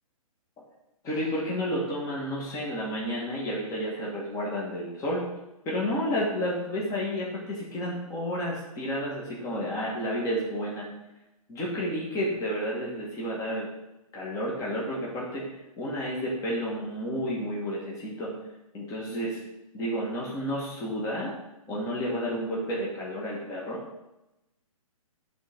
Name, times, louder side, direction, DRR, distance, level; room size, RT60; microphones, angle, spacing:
voice 1, 1.0-5.3 5.7-10.9 11.5-13.7 14.1-15.4 15.8-18.3 18.7-19.4 19.7-21.3 21.7-23.8, equal, 15° left, -5 dB, 1.9 m, -31 dB
11.0 x 4.1 x 3.7 m, 0.95 s
hypercardioid pair, 140°, 19 cm